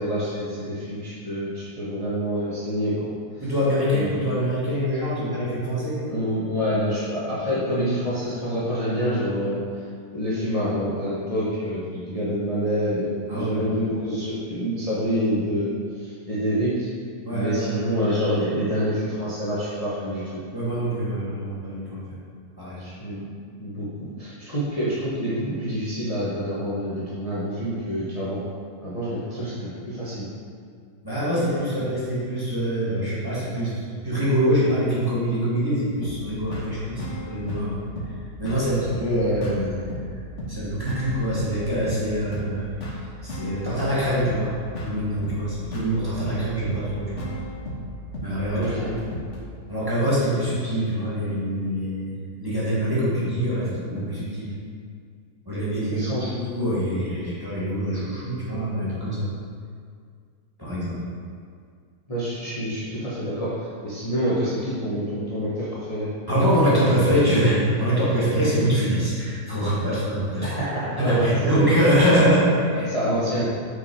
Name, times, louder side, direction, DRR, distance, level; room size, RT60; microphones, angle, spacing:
voice 1, 0.0-3.1 3.4-3.5 3.9-4.1 6.1-9.8 10.1-16.9 17.3-20.4 22.8-23.2 23.6-28.4 28.8-30.3 48.6-48.9 55.9-56.3 62.1-66.1 70.4-71.7 72.7-73.4, equal, 25° left, -10 dB, 1.2 m, -27 dB
voice 2, 3.4-6.0 13.3-13.6 17.2-17.8 20.5-22.2 22.6-22.8 29.3-29.5 31.0-37.8 38.4-39.8 40.5-42.7 43.2-44.5 44.8-47.2 48.2-48.7 49.7-54.5 55.5-59.3 60.6-61.0 66.3-70.6 71.0-72.9 73.3-73.4, equal, 15° right, -10 dB, 1.9 m, -24 dB
sound 1, 36.0-49.4, equal, 50° left, 1.4 m, -35 dB
6.1 x 5.8 x 4.7 m, 2.1 s
omnidirectional pair, 1.7 m